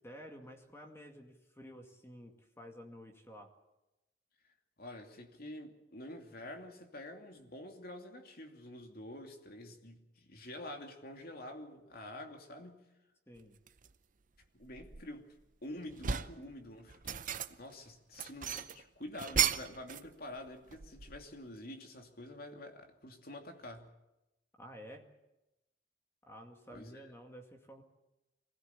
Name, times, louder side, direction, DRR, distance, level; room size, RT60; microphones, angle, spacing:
voice 1, 0.0-3.5 13.3-13.6 24.6-25.1 26.3-27.8, equal, 15° left, 3 dB, 2.2 m, -51 dB
voice 2, 4.8-12.8 14.5-15.3 15.6-17.2 17.6-23.9 26.7-27.0, left 1 dB, 55° left, 4 dB, 2.7 m, -48 dB
sound 1, 13.7-13.9 14.4-15.4 15.8-16.4 16.9-17.7 18.1-20.1 20.4-21.4, right 8 dB, 45° right, 0.7 m, -35 dB
24.0 x 16.5 x 8.4 m, 0.95 s
head